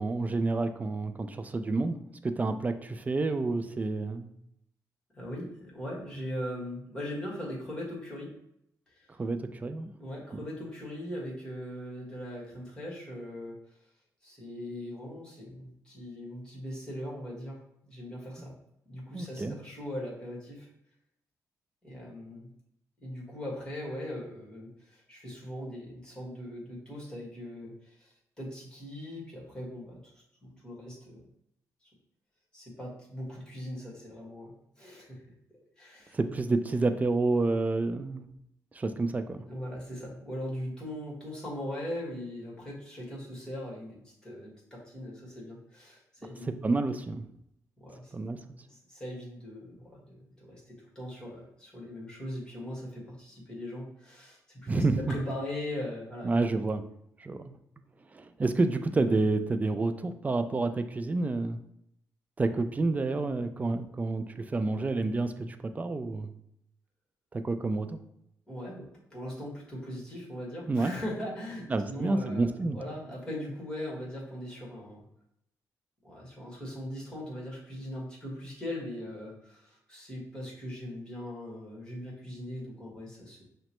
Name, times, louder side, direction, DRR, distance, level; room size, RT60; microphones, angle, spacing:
voice 1, 0.0-2.0 2.2-4.3 9.2-9.9 19.1-19.6 36.1-38.3 38.7-39.5 46.6-47.3 48.1-48.4 54.7-55.0 56.2-56.8 57.2-57.4 58.1-61.6 62.4-66.3 67.3-68.0 70.7-70.9 71.7-72.8, right 3 dB, 25° right, 8 dB, 0.3 m, -29 dB
voice 2, 5.1-8.3 8.9-9.1 10.0-13.6 14.2-18.5 18.9-20.7 21.8-22.5 23.0-30.1 30.6-31.2 32.5-35.2 35.8-36.2 39.5-46.6 47.8-48.1 48.7-56.4 68.5-75.0 76.0-83.4, left 1 dB, 10° left, -4 dB, 1.6 m, -40 dB
5.9 x 2.1 x 2.9 m, 0.77 s
cardioid pair, 100°, 7 cm